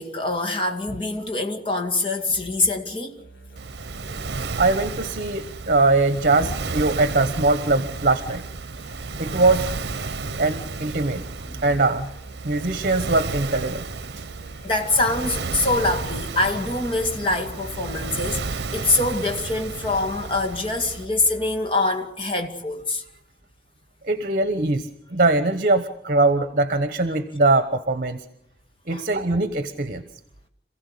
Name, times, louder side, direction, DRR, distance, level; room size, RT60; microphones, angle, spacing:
voice 1, 0.0-3.2 6.4-6.5 10.0-10.1 11.5-11.6 14.6-23.0 28.9-29.0, left 2 dB, 30° left, 2.4 m, -24 dB
sound 1, 3.2-21.5, right 2 dB, 80° left, 4.9 m, -44 dB
Waves surf, 3.6-21.1, right 3 dB, 65° right, 0.9 m, -33 dB
voice 2, 4.6-8.4 9.2-9.7 10.4-11.2 11.6-12.1 12.4-13.9 14.2-14.3 17.0-17.1 24.0-28.2 28.9-30.0, right 2 dB, 50° right, 1.2 m, -21 dB
27.5 x 16.0 x 8.5 m
head